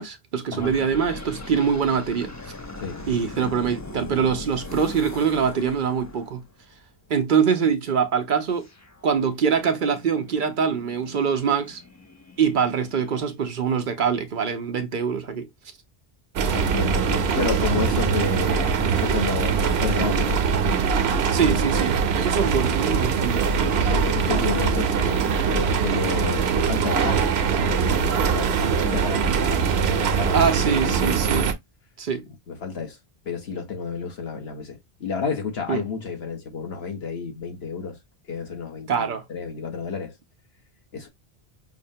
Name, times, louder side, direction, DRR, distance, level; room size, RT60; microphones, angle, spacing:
voice 1, 0.0-2.3 3.1-6.4 7.1-8.7 9.0-11.8 12.4-15.5 21.3-23.5 30.3-31.5 32.0-32.2 35.7-35.8 38.9-39.2, right 6 dB, 60° right, 0.7 m, -24 dB
sound 1, 0.6-6.8 8.6-13.5, left 2 dB, 25° left, 0.4 m, -40 dB
sound 2, 16.4-31.5, right 6 dB, 85° right, 0.9 m, -22 dB
voice 2, 16.5-20.4 23.4-31.2 32.5-33.0 33.2-38.0 38.3-40.1 40.9-41.1, left 6 dB, 80° left, 1.3 m, -31 dB
5.6 x 2.1 x 2.6 m
omnidirectional pair, 1.0 m